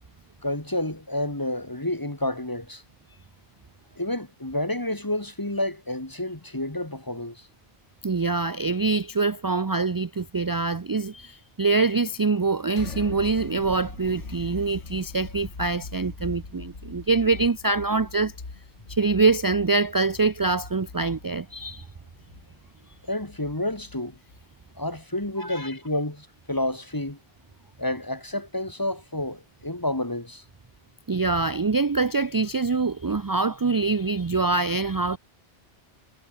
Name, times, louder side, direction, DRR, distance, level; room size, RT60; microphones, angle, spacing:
voice 1, 0.4-2.8 4.0-7.5 23.1-24.2 24.8-27.2 27.8-30.4, left 1 dB, 15° left, 2.2 m, -30 dB
voice 2, 8.0-18.3 18.9-21.9 25.4-25.7 31.1-35.2, right 3 dB, 30° right, 0.4 m, -24 dB
sound 1, 12.7-24.5, left 3 dB, 90° left, 3.1 m, -41 dB
omnidirectional pair, 1.2 m